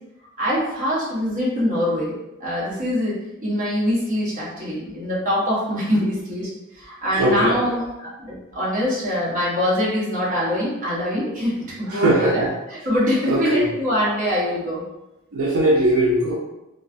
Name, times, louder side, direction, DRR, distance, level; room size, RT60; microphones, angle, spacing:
voice 1, 0.4-2.1 2.4-6.5 6.8-12.4 12.7-14.8, equal, 40° right, -7 dB, 0.9 m, -23 dB
voice 2, 7.2-7.6 11.9-12.5 13.3-13.7 15.3-16.3, right 1 dB, 75° right, -5 dB, 0.5 m, -19 dB
2.3 x 2.3 x 2.4 m, 0.93 s
head